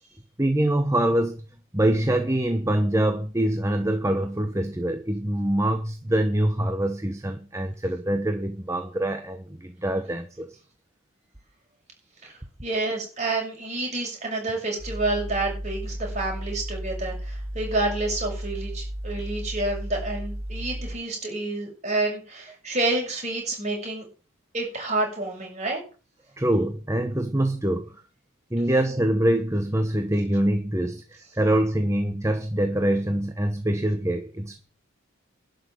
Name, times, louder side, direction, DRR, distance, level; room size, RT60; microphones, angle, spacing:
voice 1, 0.4-1.4 1.7-10.5 26.4-27.9 28.5-34.6, right 1 dB, 15° right, 6 dB, 1.1 m, -24 dB
voice 2, 12.6-24.0 24.5-25.8, right 2 dB, 35° right, 0 dB, 6.8 m, -29 dB
sound 1, 14.8-21.0, right 1 dB, 90° right, 3.2 m, -34 dB
12.0 x 6.5 x 9.0 m, 0.36 s
head